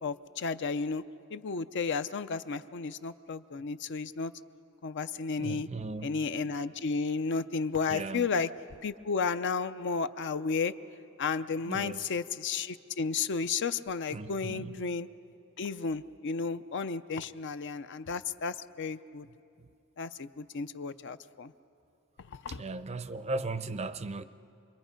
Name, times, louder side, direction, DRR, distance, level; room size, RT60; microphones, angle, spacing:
voice 1, 0.0-1.0 1.3-4.3 4.8-5.7 6.0-8.5 8.8-10.7 11.2-15.1 15.6-19.3 20.0-21.5 22.4-22.6, left 5 dB, 55° left, 0.5 m, -33 dB
voice 2, 5.4-6.1 6.4-6.5 7.9-8.3 11.6-12.1 14.1-14.9 22.5-24.2, right 3 dB, 30° right, 0.5 m, -37 dB
28.0 x 22.0 x 5.2 m
head